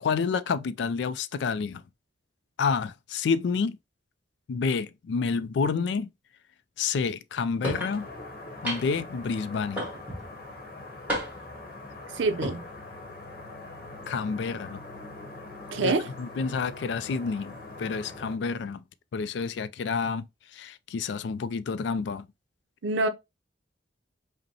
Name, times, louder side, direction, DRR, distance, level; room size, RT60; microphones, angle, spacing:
voice 1, 0.0-1.8 2.6-3.8 4.5-6.1 6.8-8.1 8.6-9.9 14.1-14.8 15.8-18.8 19.1-20.3 20.5-22.3, left 5 dB, 70° left, 0.3 m, -29 dB
sound 1, 7.6-7.9 8.6-9.1 9.8-10.3 11.1-11.6 12.3-12.6, equal, 10° right, 1.5 m, -32 dB
sound 2, 7.7-18.4, left 2 dB, 50° left, 0.9 m, -43 dB
voice 2, 12.1-12.6 15.7-16.1 22.8-23.1, right 3 dB, 85° right, 0.6 m, -26 dB
5.2 x 2.1 x 2.8 m
head